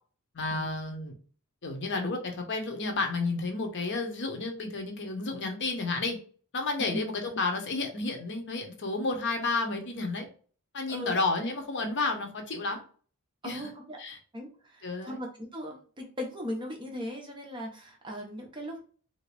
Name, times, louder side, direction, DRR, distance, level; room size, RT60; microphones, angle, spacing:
voice 1, 0.3-1.1 1.6-6.2 6.5-10.3 10.7-12.8 13.4-13.7 14.0-14.2 14.8-15.2, left 3 dB, 55° left, 4 dB, 0.8 m, -31 dB
voice 2, 13.4-14.0 14.3-18.8, left 1 dB, 20° right, 1 dB, 0.7 m, -38 dB
2.9 x 2.7 x 3.2 m, 0.42 s
head